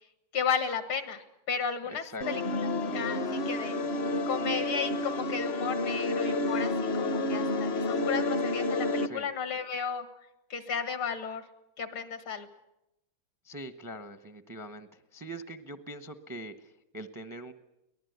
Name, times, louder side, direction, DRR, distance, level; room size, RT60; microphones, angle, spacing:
voice 1, 0.3-3.8 4.3-10.1 10.5-11.4 11.8-12.5, left 6 dB, 75° left, 10 dB, 2.5 m, -34 dB
voice 2, 1.9-2.2 9.0-9.3 13.4-17.5, right 1 dB, 30° right, 10 dB, 0.3 m, -43 dB
sound 1, 2.2-9.1, left 2 dB, 50° left, 0.8 m, -30 dB
23.5 x 19.5 x 8.1 m, 0.89 s
omnidirectional pair, 2.3 m